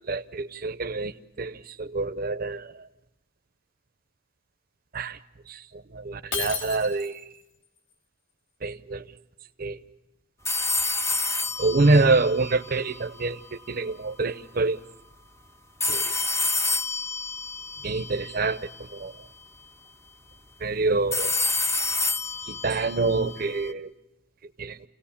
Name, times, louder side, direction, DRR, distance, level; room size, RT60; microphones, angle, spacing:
voice 1, 0.1-1.1 1.4-2.7 4.9-5.2 5.5-5.6 5.9-7.2 8.6-9.1 9.6-9.8 11.6-13.4 13.7-14.8 15.9-16.1 17.8-18.6 18.9-19.1 20.6-21.3 22.4-23.9 24.6-24.8, right 3 dB, 45° right, 10 dB, 0.7 m, -26 dB
Shatter, 6.3-7.3, left 5 dB, 65° left, 2.8 m, -32 dB
sound 1, 10.4-13.5 15.8-18.9 21.1-23.7, left 3 dB, 15° left, 0.7 m, -29 dB
29.0 x 17.5 x 7.2 m, 0.92 s
head